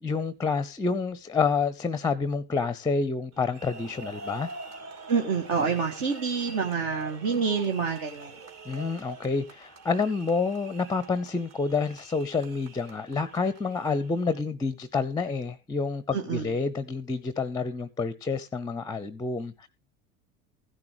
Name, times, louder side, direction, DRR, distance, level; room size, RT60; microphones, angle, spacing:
voice 1, 0.0-4.5 8.7-19.7, left 4 dB, 10° left, 0.6 m, -28 dB
sound 1, 3.3-14.4, right 3 dB, 35° right, 2.4 m, -45 dB
voice 2, 5.1-8.3 16.1-16.5, right 5 dB, 55° right, 1.8 m, -27 dB
15.5 x 10.5 x 3.0 m
figure-of-eight pair, 75°, 42 cm